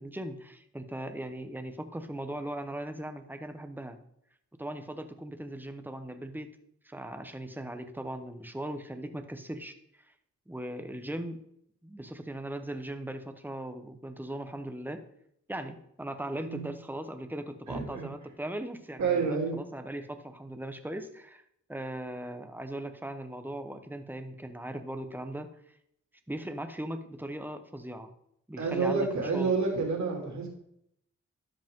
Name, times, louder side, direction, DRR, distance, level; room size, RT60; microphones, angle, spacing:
voice 1, 0.0-4.0 4.6-6.5 6.8-9.8 10.5-11.4 11.8-15.0 15.5-21.4 21.7-25.5 26.3-28.1 28.5-29.5, right 1 dB, 5° right, 8 dB, 1.1 m, -39 dB
voice 2, 17.7-18.1 19.0-19.6 28.6-30.5, right 4 dB, 65° right, 0 dB, 2.7 m, -29 dB
12.5 x 5.2 x 3.8 m, 0.73 s
cardioid pair, 60°, 30 cm